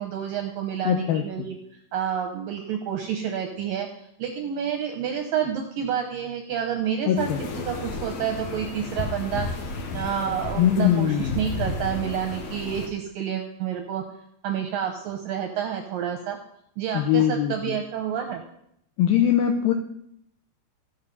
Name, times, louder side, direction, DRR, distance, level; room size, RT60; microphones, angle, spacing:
voice 1, 0.0-1.6 1.9-3.9 4.2-7.3 7.7-9.5 9.9-14.1 14.4-16.4 16.8-18.4, right 8 dB, 80° right, 4 dB, 2.0 m, -29 dB
voice 2, 0.9-1.5 7.1-7.4 10.6-11.4 16.9-17.8 19.0-19.7, left 10 dB, 85° left, 4 dB, 2.1 m, -22 dB
sound 1, 7.2-12.9, left 3 dB, 60° left, 2.7 m, -33 dB
15.5 x 5.8 x 5.4 m, 0.74 s
omnidirectional pair, 5.1 m